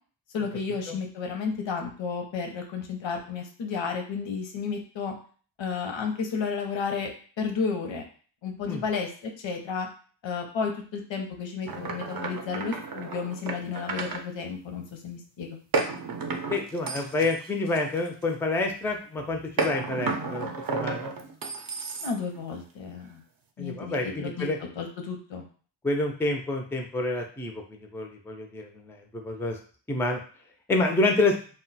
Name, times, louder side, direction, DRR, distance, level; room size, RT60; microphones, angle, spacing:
voice 1, 0.3-5.1 5.6-7.1 7.4-8.0 8.4-9.9 10.2-15.6 22.0-23.2 23.6-24.5 24.8-25.4, left 5 dB, 80° left, 3 dB, 0.7 m, -32 dB
sound 1, 11.7-14.2 15.7-18.4 19.6-22.4, right 4 dB, 50° right, 0.5 m, -32 dB
voice 2, 16.5-21.2 23.6-24.6 25.8-29.6 29.9-30.2 30.7-31.3, left 2 dB, 5° left, 3 dB, 0.3 m, -28 dB
2.3 x 2.1 x 3.9 m, 0.42 s
wide cardioid pair, 130°, 45 cm